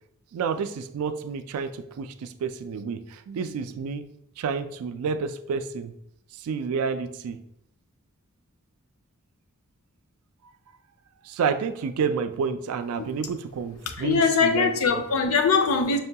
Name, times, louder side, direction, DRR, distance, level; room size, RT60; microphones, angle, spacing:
voice 1, 0.3-4.0 4.4-5.9 6.4-7.4 11.2-15.0, right 6 dB, 80° right, 10 dB, 0.3 m, -29 dB
voice 2, 14.0-16.0, left 5 dB, 70° left, 6 dB, 0.5 m, -21 dB
5.4 x 2.2 x 2.7 m, 0.75 s
head